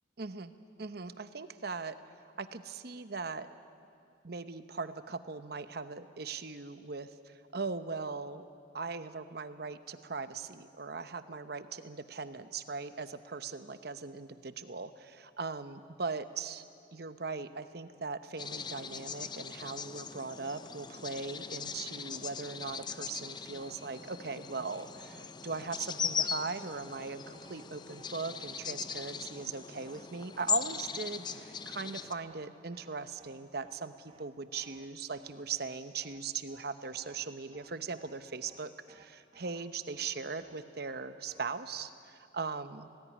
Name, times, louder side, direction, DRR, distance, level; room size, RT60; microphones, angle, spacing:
voice 1, 0.2-2.0 2.4-3.5 4.2-8.4 8.7-16.6 16.9-42.9, right 4 dB, 55° right, 11 dB, 0.9 m, -39 dB
sound 1, 18.4-32.1, left 6 dB, 25° left, 0.5 m, -39 dB
sound 2, 22.7-22.8 23.1-23.3 23.6-23.7 24.0-24.2 24.5-24.6 24.9-25.3 25.5-25.7 26.0-26.1 26.4-26.6 26.9-27.0 27.3-27.6 27.9-28.1 28.4-28.6 28.8-29.0 29.3-29.5 29.7-30.0 30.3-30.5 30.8-31.0 31.2-31.4 31.7-31.9 32.1-32.5 32.7-32.9 33.2-33.3 33.6-33.8 34.1-34.2 34.5-34.9 35.1-35.3 35.6-35.7 36.0-36.2 36.5-36.6 36.9-37.3 37.5-37.7 38.0-38.1 38.4-38.6 38.9-39.0 39.3-39.6 39.9-40.1 40.4-40.6 40.8-41.0 41.3-41.5 41.7-41.9, right 4 dB, 35° right, 1.1 m, -60 dB
18.5 x 17.5 x 9.9 m, 2.4 s
head